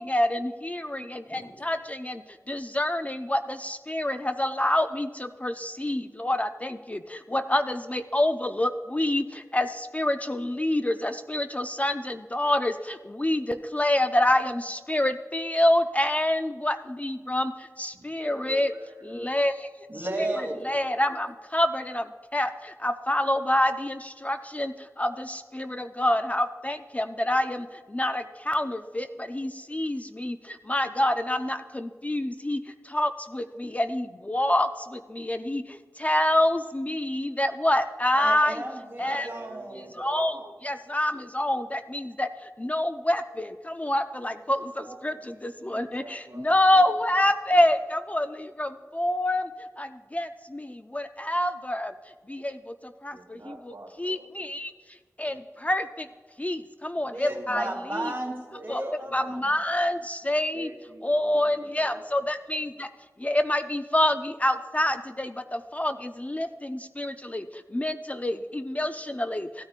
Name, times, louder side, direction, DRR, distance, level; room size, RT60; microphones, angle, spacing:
voice 1, 0.1-2.2 2.5-7.0 7.3-9.2 9.5-12.7 13.2-17.5 17.8-18.7 19.1-19.5 20.6-21.3 21.5-22.0 22.3-22.5 22.8-24.7 25.0-27.6 27.9-30.3 30.7-32.6 32.9-34.7 35.2-35.6 36.0-38.6 39.0-39.3 40.0-40.3 40.6-42.3 42.6-43.5 43.8-44.6 45.0-45.1 45.4-48.3 48.6-48.7 48.9-49.4 49.8-49.9 50.1-50.3 50.5-50.6 50.9-51.9 52.3-52.5 53.0-53.1 54.0-54.7 55.2-55.3 55.6-55.8 56.4-58.1 58.7-58.8 59.1-60.7 61.0-62.9 63.2-65.3 65.7-67.4 67.7-69.5, left 1 dB, 25° left, 9 dB, 0.4 m, -26 dB
voice 2, 17.9-19.2 39.0-40.5 44.8-46.9 53.1-54.5 57.3-59.5 60.2-62.1, right 2 dB, 70° right, 2 dB, 1.1 m, -45 dB
voice 3, 19.9-20.6 38.1-39.8 57.0-58.3 58.6-59.4, right 1 dB, 35° right, -1 dB, 2.7 m, -33 dB
15.5 x 9.3 x 2.4 m, 1.5 s
wide cardioid pair, 60°, 6 cm